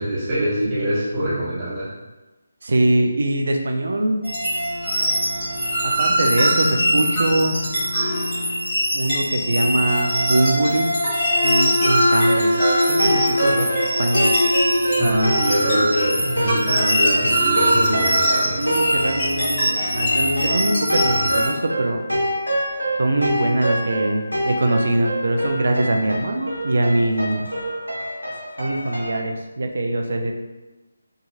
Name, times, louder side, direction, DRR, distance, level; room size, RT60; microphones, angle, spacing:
voice 1, 0.0-1.9 15.0-18.6, equal, 15° right, -11 dB, 1.0 m, -23 dB
voice 2, 2.6-4.2 5.8-7.6 8.9-11.0 11.4-12.6 12.9-14.4 18.6-22.0 23.0-27.5 28.6-30.3, right 1 dB, 55° right, 3 dB, 0.4 m, -22 dB
sound 1, 4.2-21.5, equal, 25° left, 1.2 m, -21 dB
sound 2, 11.8-29.2, right 1 dB, 90° right, 0.9 m, -26 dB
2.8 x 2.7 x 2.5 m, 1.1 s
figure-of-eight pair, 150°, 0 cm